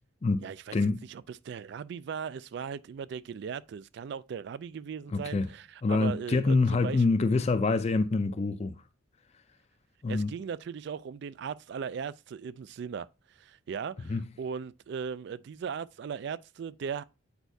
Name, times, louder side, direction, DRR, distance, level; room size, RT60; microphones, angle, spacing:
voice 1, 0.4-0.8 1.1-7.0 10.1-13.1 13.4-17.0, right 6 dB, 55° right, 0.3 m, -38 dB
voice 2, 5.1-5.5 5.8-8.8 10.0-10.3 14.0-14.3, left 3 dB, 35° left, 0.4 m, -26 dB
8.2 x 4.5 x 2.6 m
head